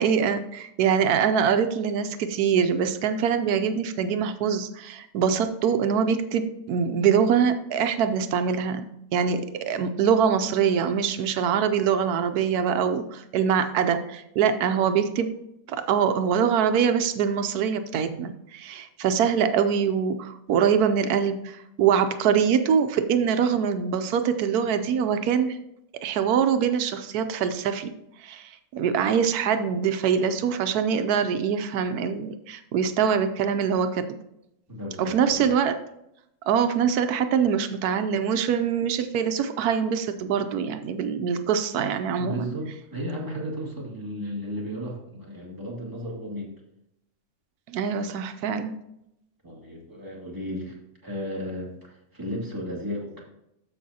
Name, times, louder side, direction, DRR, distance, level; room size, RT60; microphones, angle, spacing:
voice 1, 0.0-15.3 15.7-25.6 25.9-27.9 28.2-34.1 35.0-35.7 36.5-42.4 47.7-48.8, right 7 dB, 90° right, 9 dB, 1.2 m, -24 dB
voice 2, 34.7-35.5 42.1-46.5 49.4-50.8 51.0-53.2, equal, 15° right, -3 dB, 2.0 m, -34 dB
13.5 x 5.5 x 2.7 m, 0.83 s
omnidirectional pair, 1.6 m